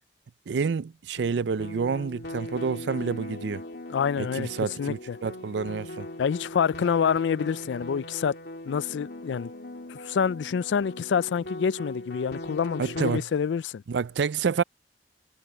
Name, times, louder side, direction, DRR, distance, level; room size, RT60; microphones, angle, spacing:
voice 1, 0.5-3.6 4.2-6.1 12.8-13.2 13.9-14.6, right 5 dB, 70° right, 0.4 m, -28 dB
sound 1, 1.2-13.2, left 1 dB, 65° left, 3.0 m, -39 dB
voice 2, 3.9-4.5 4.8-5.2 6.2-8.3 8.7-9.5 9.9-13.8, left 7 dB, 85° left, 0.4 m, -27 dB
head